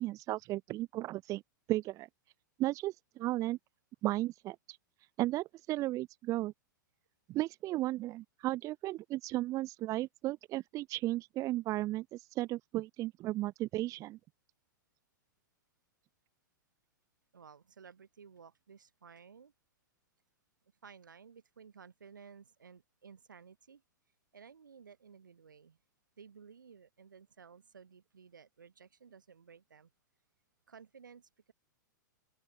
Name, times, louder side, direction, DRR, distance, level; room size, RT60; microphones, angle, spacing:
voice 1, 0.0-1.4 1.7-2.1 2.6-3.6 4.0-4.6 5.2-6.5 7.3-14.2, right 16 dB, 30° right, 0.6 m, -35 dB
voice 2, 17.3-19.5 20.8-23.8 24.3-25.8 26.2-29.9 30.7-31.5, right 6 dB, 80° right, 4.6 m, -56 dB
open air
hypercardioid pair, 105°, 10 cm